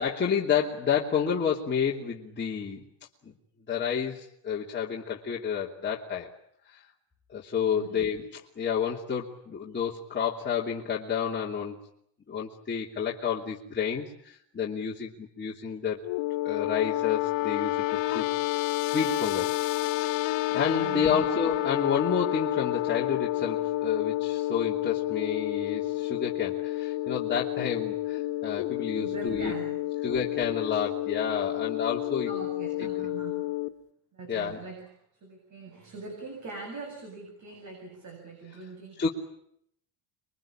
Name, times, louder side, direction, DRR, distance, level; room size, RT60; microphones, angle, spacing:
voice 1, 0.0-2.8 3.2-3.3 3.7-6.3 6.6-6.8 7.3-11.8 12.3-16.0 16.4-18.3 18.5-19.5 20.5-29.5 30.0-32.3 32.8-32.9 34.3-34.6 39.0-39.1, left 7 dB, 25° left, -3 dB, 3.0 m, -30 dB
voice 2, 7.7-8.1 20.8-21.2 29.0-29.8 32.3-33.5 34.1-34.9 35.2-39.1, right 3 dB, 40° right, 4 dB, 8.0 m, -42 dB
sound 1, 16.0-33.7, left 16 dB, 70° left, 1.8 m, -30 dB
27.0 x 23.0 x 8.9 m, 0.72 s
cardioid pair, 135°, 46 cm